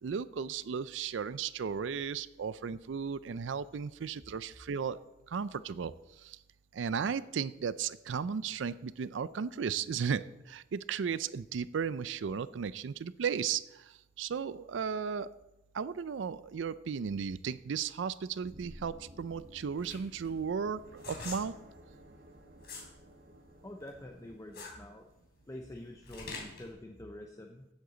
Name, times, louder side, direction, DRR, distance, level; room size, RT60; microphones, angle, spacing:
voice 1, 0.0-5.0 5.3-6.4 6.7-15.3 15.7-21.5, right 6 dB, 70° right, 16 dB, 0.4 m, -35 dB
sound 1, 18.3-24.4, equal, 55° right, 1.0 m, -54 dB
sound 2, 19.3-22.9 23.3-26.7, left 3 dB, 60° left, 3.4 m, -45 dB
voice 2, 23.6-25.1 25.5-27.7, left 1 dB, 15° left, 3 dB, 0.6 m, -46 dB
15.0 x 8.0 x 3.9 m, 0.94 s
head